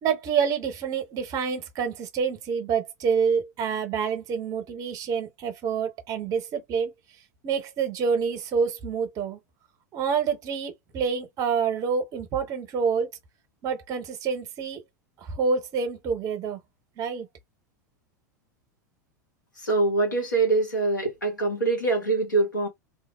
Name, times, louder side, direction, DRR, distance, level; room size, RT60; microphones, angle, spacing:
voice 1, 0.0-6.9 7.4-9.4 9.9-13.1 13.6-14.8 15.2-16.6 17.0-17.3, right 6 dB, 35° right, 0.8 m, -27 dB
voice 2, 19.6-22.7, right 3 dB, 85° left, 1.1 m, -24 dB
2.7 x 2.0 x 2.2 m
figure-of-eight pair, 85°, 10 cm